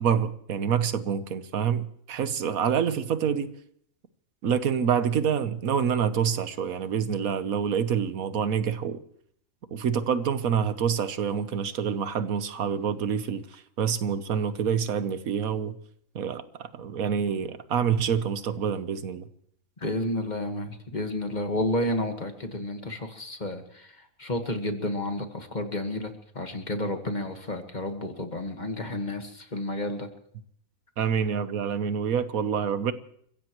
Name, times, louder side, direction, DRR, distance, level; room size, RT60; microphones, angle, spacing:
voice 1, 0.0-3.5 4.4-9.0 9.7-15.8 16.1-19.3 31.0-32.9, right 7 dB, 90° right, 1.4 m, -27 dB
voice 2, 19.8-30.1, left 1 dB, 35° left, 1.6 m, -31 dB
29.5 x 15.5 x 3.1 m
omnidirectional pair, 1.4 m